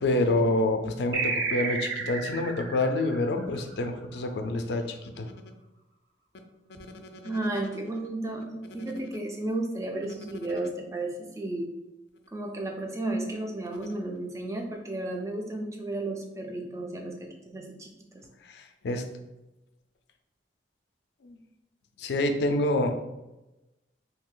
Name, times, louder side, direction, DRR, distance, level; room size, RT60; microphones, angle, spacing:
voice 1, 0.0-4.9 5.1-5.3 18.5-19.0 21.2-21.4 22.0-22.9, left 2 dB, 65° left, 6 dB, 0.4 m, -27 dB
sound 1, 1.1-4.1, right 4 dB, 85° right, 0.6 m, -32 dB
voice 2, 7.2-11.7 12.3-18.2, right 2 dB, 15° right, 2 dB, 0.4 m, -33 dB
2.7 x 2.4 x 3.7 m, 0.99 s
head